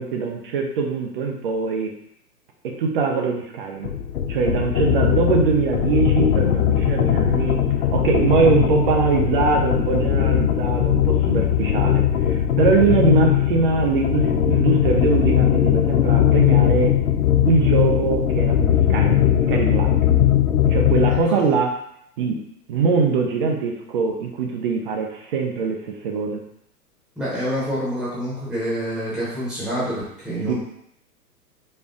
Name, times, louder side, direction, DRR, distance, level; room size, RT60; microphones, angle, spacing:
voice 1, 0.0-1.9 2.6-3.9 4.3-7.6 7.9-17.0 17.5-19.9 20.7-21.7 22.2-22.4 22.7-26.4 30.5-30.6, right 5 dB, 35° right, 2 dB, 0.6 m, -22 dB
sound 1, 3.8-21.3, left 10 dB, 60° left, 0.5 m, -19 dB
voice 2, 21.1-21.5 27.2-30.5, equal, ahead, -9 dB, 1.0 m, -27 dB
4.4 x 2.2 x 3.6 m, 0.73 s
figure-of-eight pair, 115°, 48 cm